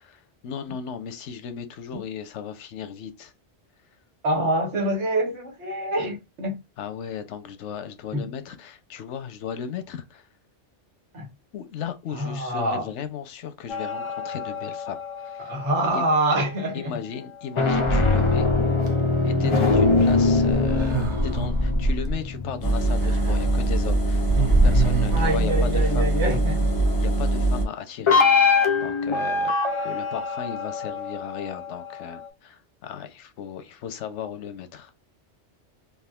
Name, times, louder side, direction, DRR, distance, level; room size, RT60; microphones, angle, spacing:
voice 1, 0.0-3.3 6.8-10.3 11.5-15.0 15.2-15.5 16.7-18.5 19.2-26.1 27.0-34.9, left 7 dB, 90° left, 0.9 m, -36 dB
voice 2, 4.2-6.6 8.1-8.3 11.1-11.3 12.1-12.9 15.4-17.0 18.6-18.7 19.4-19.6 25.1-26.7, right 1 dB, 90° right, 1.5 m, -26 dB
sound 1, 13.7-16.3 17.4-24.2 28.1-32.3, left 4 dB, 55° left, 0.3 m, -24 dB
sound 2, 17.8-18.9 20.4-22.2 23.0-23.3 23.7-23.8 24.1-25.3, right 1 dB, 40° right, 0.4 m, -24 dB
Engine, 22.6-27.6, right 2 dB, 20° left, 0.8 m, -22 dB
3.5 x 2.5 x 2.3 m
omnidirectional pair, 1.2 m